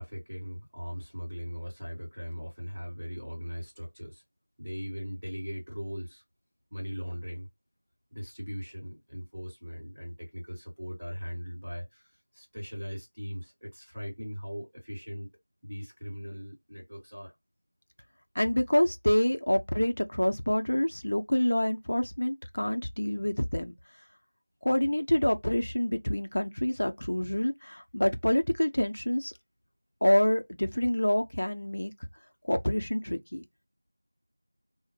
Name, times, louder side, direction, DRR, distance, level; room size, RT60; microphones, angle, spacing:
voice 1, 0.0-4.2 4.6-6.2 6.7-7.5 8.1-15.3 15.6-17.3, equal, 5° right, 1.4 m, -39 dB
voice 2, 18.4-23.8 24.6-29.3 30.0-31.9 32.4-33.4, left 1 dB, 50° left, 0.5 m, -27 dB
3.0 x 2.0 x 3.0 m
figure-of-eight pair, 180°, 0 cm